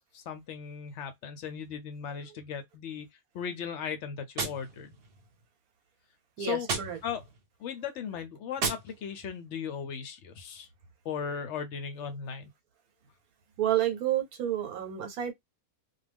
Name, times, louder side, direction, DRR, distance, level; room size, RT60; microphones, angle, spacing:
voice 1, 0.1-3.1 3.3-5.0 6.4-6.7 7.0-7.2 7.6-10.7 11.0-12.5, left 7 dB, 65° left, 0.7 m, -37 dB
Gunshot gunfire, 4.3-5.4 6.6-7.5 8.6-9.4, right 4 dB, 50° right, 0.9 m, -36 dB
voice 2, 6.4-7.0 13.6-15.3, right 11 dB, 80° right, 1.2 m, -30 dB
2.3 x 2.2 x 3.4 m
omnidirectional pair, 1.5 m